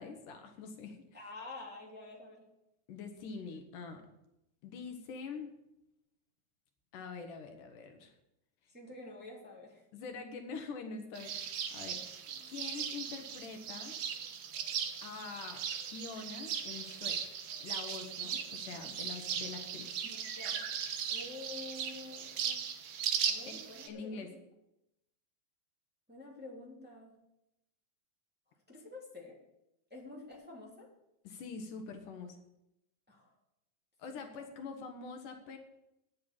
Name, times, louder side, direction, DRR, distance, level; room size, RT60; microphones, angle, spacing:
voice 1, 0.0-1.2 2.9-4.1 4.6-5.5 6.9-8.1 9.9-12.0 12.4-14.0 15.0-17.2 17.6-19.9 23.4-24.3 31.2-32.4 34.0-35.6, left 5 dB, 75° left, 5 dB, 2.7 m, -45 dB
voice 2, 1.1-2.5 8.7-9.8 12.3-12.5 20.0-20.7 21.1-22.6 23.3-24.3 26.1-27.1 28.7-29.4 29.9-30.9 33.1-33.3 34.4-34.5, left 2 dB, 5° right, -5 dB, 2.6 m, -48 dB
sound 1, 11.1-23.9, right 8 dB, 65° right, 1.8 m, -38 dB
10.5 x 8.6 x 7.2 m, 0.86 s
omnidirectional pair, 3.8 m